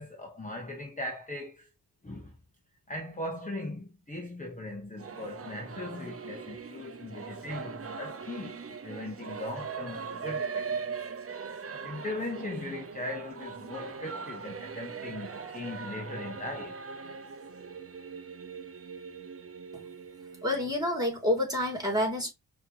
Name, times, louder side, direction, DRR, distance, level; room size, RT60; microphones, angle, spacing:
voice 1, 0.0-1.7 2.0-2.4 2.9-10.9 11.8-16.8, left 1 dB, 20° left, 1.1 m, -39 dB
Singing / Musical instrument, 5.0-21.3, right 5 dB, 35° right, 0.9 m, -40 dB
voice 2, 20.4-22.3, left 1 dB, 10° right, 2.8 m, -28 dB
5.7 x 3.1 x 3.0 m
supercardioid pair, 55°, 42 cm